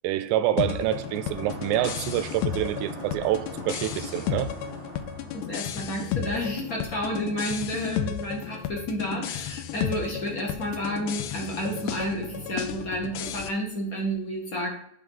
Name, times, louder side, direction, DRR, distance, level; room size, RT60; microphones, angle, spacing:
voice 1, 0.0-4.5, right 13 dB, 85° right, 13 dB, 2.0 m, -27 dB
sound 1, 0.6-13.5, left 10 dB, 85° left, 1.4 m, -33 dB
sound 2, 0.8-6.3, right 1 dB, 35° right, 1.2 m, -42 dB
voice 2, 5.3-14.7, equal, 55° left, -1 dB, 0.9 m, -31 dB
9.5 x 3.5 x 5.4 m, 0.70 s
omnidirectional pair, 3.5 m